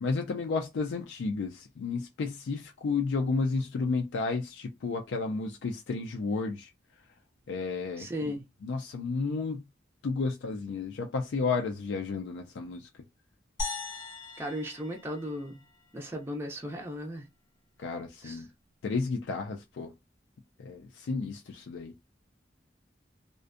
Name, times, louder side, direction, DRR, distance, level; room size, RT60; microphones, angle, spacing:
voice 1, 0.0-6.7 7.5-8.3 8.6-9.6 10.0-12.9 17.8-18.5 18.8-19.9 20.6-21.9, left 4 dB, 85° left, 0.4 m, -32 dB
voice 2, 8.0-8.4 14.4-15.6 15.9-17.3 18.2-18.4, equal, 15° right, 0.4 m, -36 dB
sound 1, 13.6-16.0, left 3 dB, 20° left, 0.7 m, -39 dB
2.5 x 2.1 x 2.4 m
head